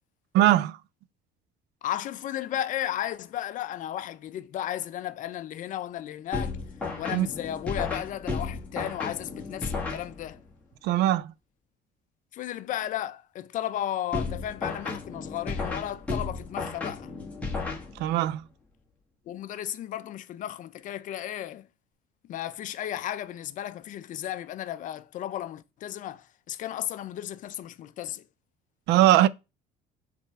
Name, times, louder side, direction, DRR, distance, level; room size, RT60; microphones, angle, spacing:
voice 1, 0.3-0.8 7.1-7.3 10.8-11.3 18.0-18.4 28.9-29.3, right 14 dB, 70° right, 0.4 m, -20 dB
voice 2, 1.8-6.6 7.0-10.4 12.3-17.1 19.3-21.7 22.3-28.2, left 12 dB, 45° left, 0.5 m, -34 dB
sound 1, 6.3-10.5 14.1-18.3, left 3 dB, 5° left, 1.6 m, -34 dB
7.0 x 3.5 x 4.6 m
cardioid pair, 155°, 18 cm